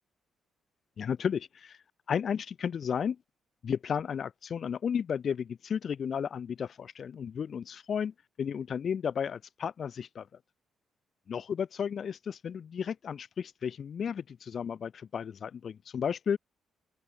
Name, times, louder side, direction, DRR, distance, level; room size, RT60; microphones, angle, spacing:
voice 1, 1.0-1.8 2.1-3.2 3.6-8.1 8.4-10.3 11.3-16.4, left 7 dB, 45° left, 7.0 m, -33 dB
open air
cardioid pair, 155°, 0 cm